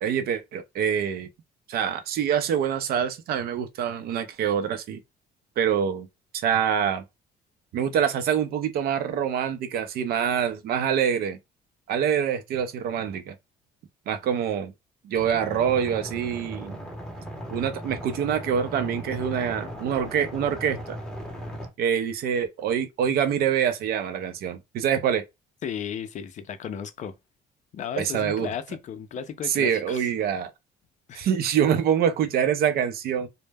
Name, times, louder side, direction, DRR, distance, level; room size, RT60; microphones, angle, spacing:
voice 1, 0.0-1.3 1.7-5.0 5.6-6.1 6.4-7.0 7.7-11.4 11.9-13.3 14.1-14.7 15.0-16.8 17.5-21.0 21.8-25.2 28.0-28.5 29.4-30.5 31.1-33.3, right 8 dB, 65° right, 0.5 m, -25 dB
sound 1, 15.2-21.7, equal, 5° left, 0.7 m, -37 dB
voice 2, 25.6-27.1 27.7-30.0 31.1-31.3, left 8 dB, 45° left, 0.4 m, -35 dB
2.1 x 2.1 x 3.3 m
cardioid pair, 110°, 17 cm